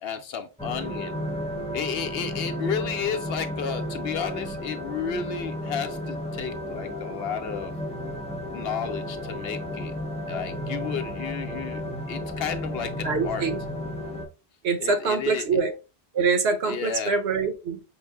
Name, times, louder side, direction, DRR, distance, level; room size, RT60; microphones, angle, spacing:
voice 1, 0.0-1.1 1.7-7.7 8.5-9.9 10.3-11.8 12.1-13.5 14.8-15.5 16.6-17.1, left 7 dB, 75° left, 0.9 m, -32 dB
sound 1, 0.6-14.2, left 1 dB, 5° left, 0.7 m, -33 dB
voice 2, 13.0-13.6 14.6-15.7 16.1-17.8, right 4 dB, 85° right, 1.0 m, -24 dB
5.9 x 2.1 x 3.4 m
omnidirectional pair, 1.0 m